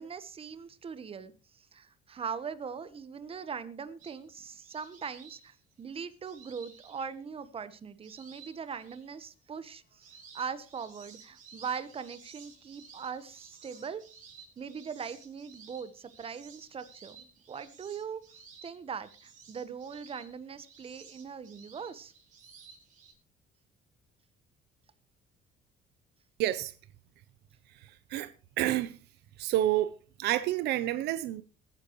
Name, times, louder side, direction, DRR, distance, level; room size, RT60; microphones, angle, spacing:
voice 1, 0.0-14.0 14.6-22.1, right 6 dB, 35° right, 1.2 m, -41 dB
sound 1, 4.0-7.5 8.0-9.1 9.6-23.1, right 5 dB, 50° right, 5.4 m, -55 dB
voice 2, 26.4-26.7 28.1-28.3 28.6-28.9 29.4-31.4, right 14 dB, 80° right, 0.7 m, -29 dB
21.5 x 10.0 x 3.1 m
cardioid pair, 110°, 17 cm